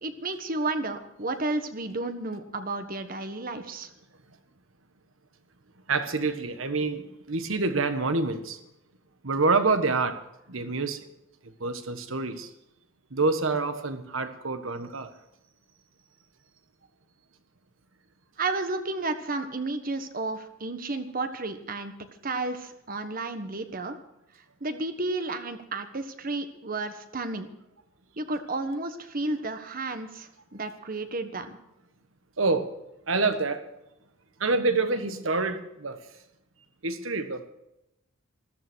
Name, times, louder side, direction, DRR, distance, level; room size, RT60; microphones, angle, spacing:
voice 1, 0.0-3.9 18.4-21.9 22.2-24.0 24.6-27.5 28.2-31.6, right 2 dB, 45° right, 8 dB, 1.4 m, -32 dB
voice 2, 5.9-8.6 9.2-10.2 10.5-11.1 11.6-12.5 13.1-15.1 32.4-32.7 33.1-33.6 34.4-36.0 36.8-37.5, right 3 dB, 75° right, 9 dB, 1.5 m, -27 dB
14.0 x 13.5 x 6.3 m, 0.89 s
head